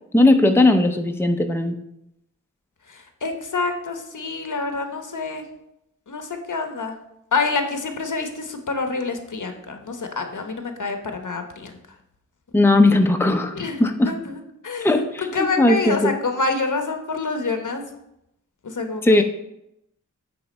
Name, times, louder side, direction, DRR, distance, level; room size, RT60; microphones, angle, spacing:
voice 1, 0.1-1.8 12.5-14.1 14.8-16.1 19.0-19.2, left 2 dB, 5° left, 5 dB, 0.6 m, -18 dB
voice 2, 2.9-5.4 6.1-6.9 7.3-11.8 13.5-17.9 18.6-19.2, left 3 dB, 75° left, 5 dB, 1.0 m, -27 dB
9.2 x 3.5 x 5.3 m, 0.82 s
wide cardioid pair, 60°, 31 cm